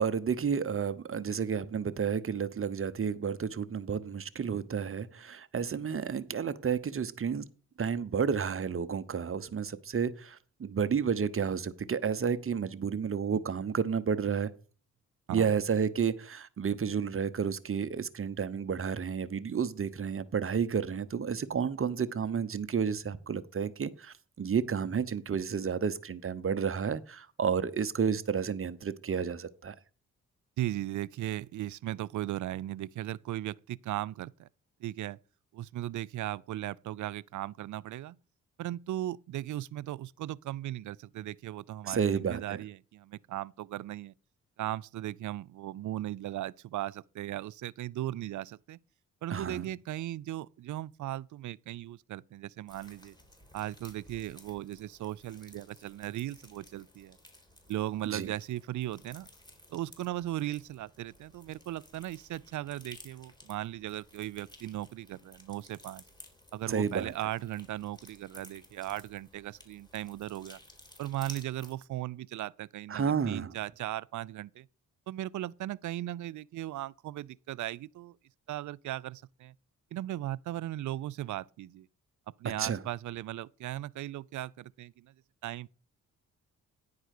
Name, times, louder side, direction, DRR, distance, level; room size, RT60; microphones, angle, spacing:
voice 1, 0.0-7.4 7.8-14.5 15.3-29.7 41.8-42.6 49.3-49.6 58.1-58.3 66.7-67.1 72.9-73.5 82.6-82.8, right 6 dB, 40° right, 0.9 m, -31 dB
voice 2, 30.6-34.5 34.8-35.2 35.5-38.2 38.6-44.1 44.6-48.8 49.2-53.2 53.5-57.2 57.7-59.3 59.7-66.0 66.5-70.6 71.0-74.7 75.1-78.2 78.5-79.5 79.9-81.9 82.4-85.1 85.4-85.7, right 14 dB, 65° right, 0.5 m, -37 dB
sound 1, 52.7-71.7, left 1 dB, 15° left, 3.6 m, -55 dB
10.0 x 4.8 x 6.5 m
supercardioid pair, 55°, 33 cm